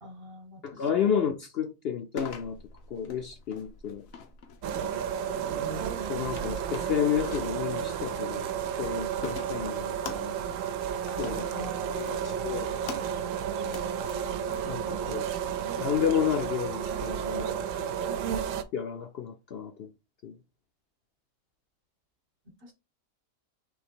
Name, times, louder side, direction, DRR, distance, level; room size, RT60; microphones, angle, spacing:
voice 1, 0.0-0.8 11.5-12.2 13.6-13.9 22.6-22.7, equal, 45° right, 1.1 m, -45 dB
voice 2, 0.6-2.6 2.9-4.0 6.1-8.5 8.8-10.4 11.2-12.7 14.7-15.3 15.8-17.9 18.7-19.9 20.2-20.3, left 8 dB, 60° left, 0.7 m, -31 dB
sound 1, 2.2-15.4, left 6 dB, 85° left, 1.2 m, -46 dB
sound 2, 4.6-18.6, right 8 dB, 75° right, 0.9 m, -32 dB
3.8 x 3.0 x 4.4 m
omnidirectional pair, 1.4 m